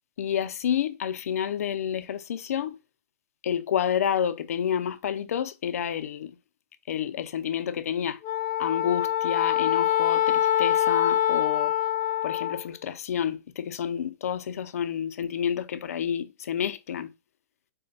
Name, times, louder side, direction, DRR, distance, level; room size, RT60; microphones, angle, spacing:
voice 1, 0.2-2.8 3.4-6.4 6.9-8.2 8.6-11.7 12.2-17.1, left 9 dB, 85° left, 0.5 m, -29 dB
Wind instrument woodwind instrument, 8.2-12.6, left 11 dB, 25° left, 0.6 m, -24 dB
4.1 x 2.2 x 3.7 m
hypercardioid pair, 155°, 8 cm